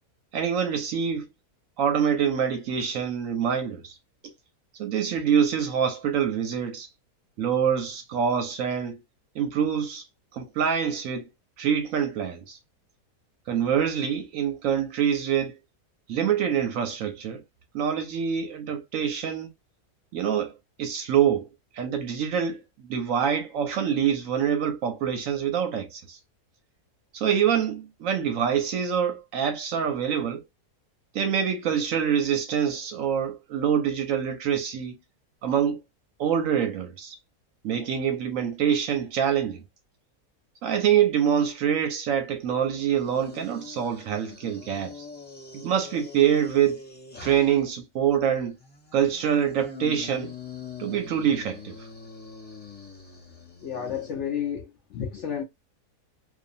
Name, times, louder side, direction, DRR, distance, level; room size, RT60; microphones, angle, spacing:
voice 1, 0.3-1.3 1.8-3.9 4.8-6.9 7.4-9.0 9.3-10.0 10.3-11.3 11.6-12.6 13.5-15.6 16.1-17.4 17.7-19.5 20.1-20.5 20.8-21.5 21.7-26.2 27.1-30.4 31.1-35.0 35.4-35.8 36.2-37.2 37.6-39.6 40.6-45.0 45.5-46.8 47.2-48.6 48.9-50.3 50.8-51.8, right 8 dB, 65° right, 0.9 m, -25 dB
sound 1, 42.9-47.7 48.6-54.1, left 5 dB, 10° left, 0.4 m, -43 dB
voice 2, 53.6-55.4, left 8 dB, 65° left, 0.7 m, -31 dB
2.6 x 2.4 x 2.5 m
omnidirectional pair, 1.7 m